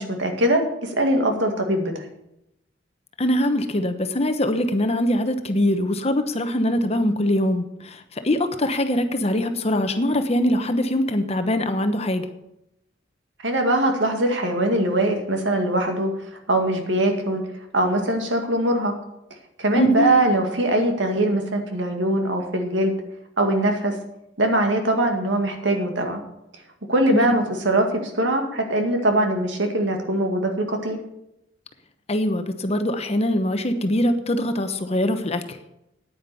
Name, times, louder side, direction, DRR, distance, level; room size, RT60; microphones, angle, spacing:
voice 1, 0.0-1.9 13.4-16.1 16.5-17.4 17.7-18.9 19.6-22.9 23.4-23.9 24.4-26.2 26.9-31.0, right 1 dB, 75° right, 4 dB, 2.1 m, -22 dB
voice 2, 3.2-12.3 19.7-20.1 27.1-27.5 32.1-35.6, left 1 dB, 35° left, 8 dB, 1.0 m, -23 dB
9.5 x 9.5 x 7.0 m, 0.84 s
head